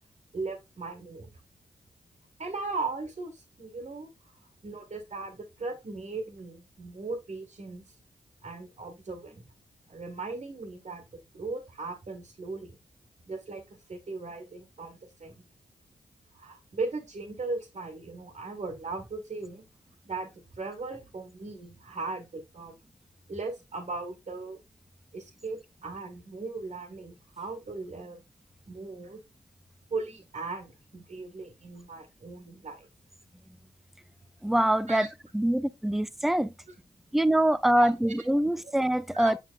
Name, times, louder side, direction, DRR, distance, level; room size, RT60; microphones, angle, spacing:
voice 1, 0.3-1.3 2.4-4.1 4.6-7.8 8.4-9.4 9.9-12.8 13.3-13.6 13.9-15.4 16.3-19.7 20.0-22.8 23.3-24.6 25.1-28.2 28.7-29.2 29.9-32.9 34.9-35.1 37.7-37.9 39.1-39.4, right 3 dB, 55° right, 1.6 m, -38 dB
voice 2, 34.4-35.1 35.3-36.5 37.1-39.4, right 1 dB, ahead, 0.4 m, -24 dB
6.9 x 5.7 x 2.4 m
supercardioid pair, 40°, 15 cm